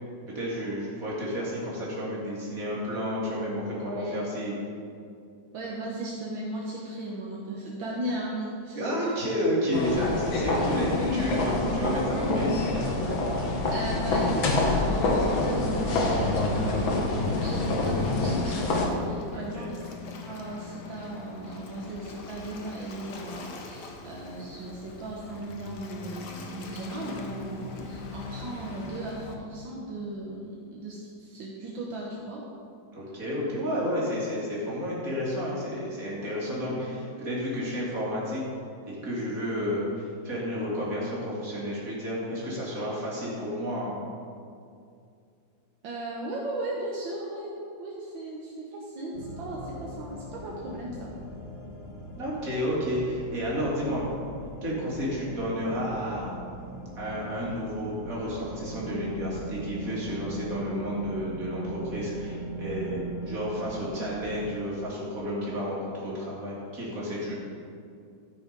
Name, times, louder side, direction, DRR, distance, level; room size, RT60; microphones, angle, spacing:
voice 1, 0.3-4.5 8.7-12.5 19.3-19.7 32.9-38.4 38.9-44.0 52.1-54.0 54.6-56.3 57.0-67.3, equal, 45° right, -6 dB, 3.1 m, -31 dB
voice 2, 3.8-4.3 5.5-9.1 11.2-11.8 13.7-32.4 36.5-36.9 45.8-51.1 55.1-55.2 63.6-63.9, right 1 dB, 75° right, -3 dB, 1.9 m, -37 dB
sound 1, 9.7-18.9, left 2 dB, 80° left, 2.1 m, -26 dB
Waves surf, 13.7-29.3, left 3 dB, 60° left, 1.5 m, -41 dB
sound 2, 49.1-64.6, right 2 dB, 40° left, 2.1 m, -40 dB
13.5 x 6.3 x 5.3 m, 2.4 s
omnidirectional pair, 2.1 m